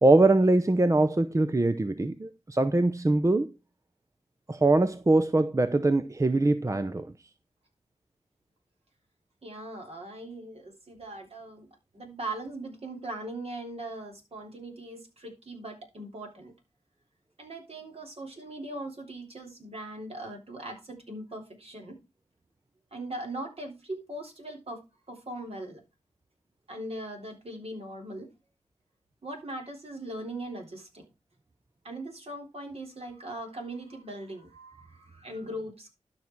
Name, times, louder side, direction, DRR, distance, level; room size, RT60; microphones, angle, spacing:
voice 1, 0.0-3.5 4.5-7.1, right 2 dB, 25° right, 0.7 m, -23 dB
voice 2, 9.4-16.5 17.4-22.0 22.9-24.8 25.1-25.8 26.7-28.3 29.2-31.1 31.8-35.9, right 1 dB, 55° right, 3.8 m, -40 dB
12.0 x 5.7 x 4.6 m
cardioid pair, 50°, 12 cm